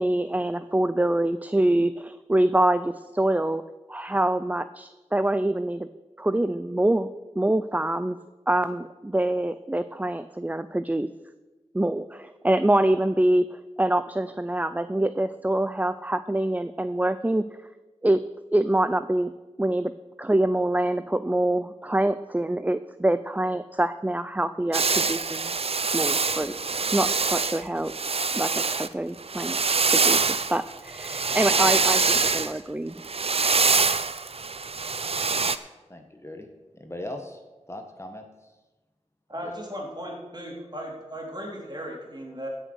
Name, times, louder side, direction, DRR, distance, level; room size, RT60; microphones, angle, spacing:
voice 1, 0.0-3.6 3.9-5.9 6.2-7.1 7.4-8.2 8.5-11.1 11.7-13.5 13.8-17.4 18.0-18.2 18.5-19.3 19.6-19.9 20.2-25.5 25.9-26.5 26.9-27.9 28.3-29.6 29.9-33.0, right 1 dB, 15° right, 12 dB, 0.5 m, -25 dB
sound 1, 24.7-28.9 29.2-32.5 33.0-35.6, right 4 dB, 55° right, 0.6 m, -24 dB
voice 2, 35.9-36.5 36.7-37.4 37.7-38.5 39.4-39.5, left 1 dB, 20° left, 4 dB, 1.5 m, -39 dB
voice 3, 39.3-42.5, equal, 35° right, -1 dB, 3.7 m, -36 dB
16.0 x 6.5 x 6.3 m, 1.2 s
cardioid pair, 45°, 12 cm